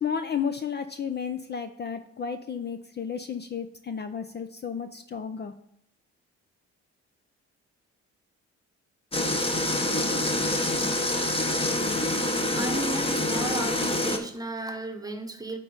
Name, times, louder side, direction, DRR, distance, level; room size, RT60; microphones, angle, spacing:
voice 1, 0.0-5.5, left 7 dB, 35° left, 0.5 m, -32 dB
sound 1, 9.1-14.2, left 1 dB, 20° left, 1.0 m, -26 dB
voice 2, 12.1-15.6, right 2 dB, 10° right, 1.1 m, -34 dB
8.3 x 3.8 x 5.4 m
cardioid pair, 90°, 30 cm